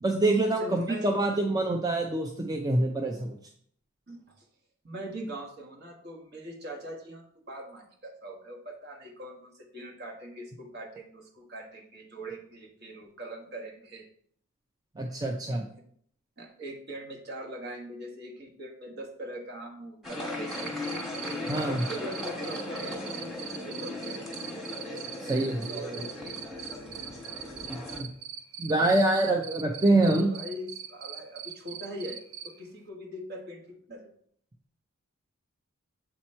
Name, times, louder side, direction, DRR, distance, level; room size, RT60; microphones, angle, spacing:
voice 1, 0.0-3.4 15.0-15.7 21.5-21.8 25.2-26.0 27.7-28.1 28.6-30.3, right 2 dB, 20° right, 2 dB, 0.4 m, -26 dB
voice 2, 0.6-1.1 4.1-4.4 4.8-14.1 16.4-20.7 21.2-24.2 25.7-26.1 30.0-32.2 32.4-34.1, right 1 dB, 50° right, 1 dB, 1.2 m, -41 dB
sound 1, 20.0-28.0, left 2 dB, ahead, 1.3 m, -37 dB
Cricket, 20.5-32.5, right 9 dB, 70° right, 0.6 m, -40 dB
7.6 x 3.0 x 4.3 m, 0.63 s
head